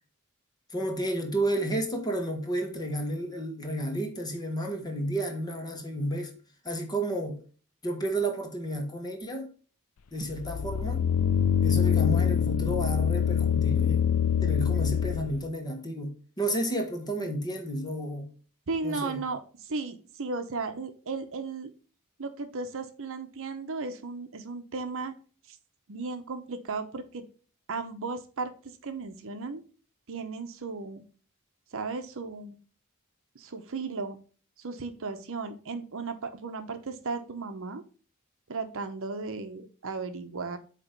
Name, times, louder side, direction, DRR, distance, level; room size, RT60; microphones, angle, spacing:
voice 1, 0.7-6.3 6.6-7.4 7.8-9.5 10.1-11.0 11.6-14.0 14.4-18.3 18.8-19.2, right 1 dB, 20° left, 1.4 m, -31 dB
sound 1, 10.3-15.4, left 8 dB, 70° left, 0.4 m, -25 dB
voice 2, 18.7-21.7 22.2-25.1 25.5-25.6 25.9-27.2 27.7-29.6 30.1-31.0 31.7-32.6 33.3-34.2 34.6-37.8 38.5-40.6, right 4 dB, 65° right, 0.8 m, -35 dB
8.5 x 3.0 x 5.2 m
head